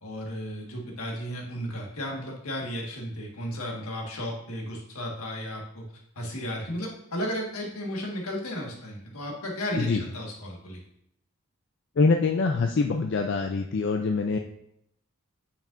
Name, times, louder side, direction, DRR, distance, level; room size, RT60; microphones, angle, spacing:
voice 1, 0.0-5.8 6.1-10.8, equal, 80° left, -1 dB, 1.6 m, -34 dB
voice 2, 12.0-14.4, left 4 dB, 50° left, 4 dB, 0.4 m, -24 dB
8.8 x 5.2 x 2.6 m, 0.75 s
head